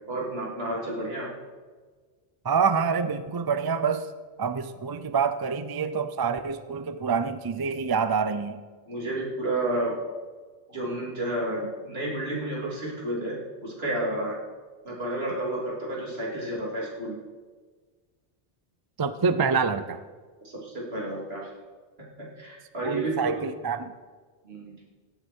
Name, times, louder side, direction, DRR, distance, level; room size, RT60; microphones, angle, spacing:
voice 1, 0.1-1.3 8.9-10.0 10.7-14.4 14.8-17.2 20.4-21.5 22.4-23.3 24.4-24.7, right 1 dB, 65° right, -5 dB, 3.5 m, -31 dB
voice 2, 2.4-4.1 4.4-8.6 19.0-20.0 22.8-23.9, right 5 dB, 35° right, 12 dB, 0.3 m, -26 dB
17.0 x 7.9 x 4.5 m, 1.4 s
omnidirectional pair, 1.1 m